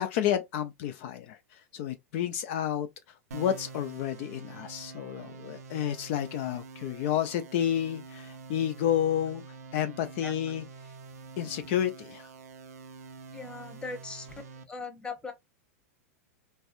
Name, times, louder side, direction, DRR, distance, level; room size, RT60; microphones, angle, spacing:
voice 1, 0.0-1.4 1.7-2.9 3.3-9.4 9.7-10.6 11.4-12.2, left 10 dB, 55° left, 0.4 m, -30 dB
sound 1, 3.3-14.6, right 4 dB, 85° right, 0.5 m, -46 dB
voice 2, 13.3-14.3 14.7-15.3, left 4 dB, 10° left, 0.9 m, -39 dB
3.3 x 2.2 x 2.5 m
hypercardioid pair, 105°, 8 cm